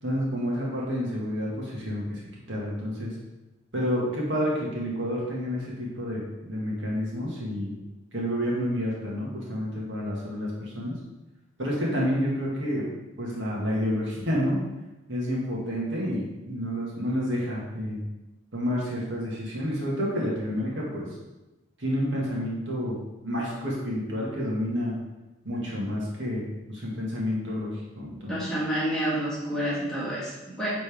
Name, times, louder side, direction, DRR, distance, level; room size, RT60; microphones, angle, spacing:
voice 1, 0.0-2.2 2.5-3.1 3.7-7.7 8.1-10.9 11.6-12.8 13.2-14.6 15.1-18.0 18.5-21.1 21.8-23.0 23.2-24.9 25.5-28.3, equal, 85° right, -4 dB, 2.0 m, -29 dB
voice 2, 28.3-30.7, right 1 dB, 5° left, -10 dB, 2.3 m, -29 dB
8.5 x 4.2 x 3.6 m, 1.0 s
head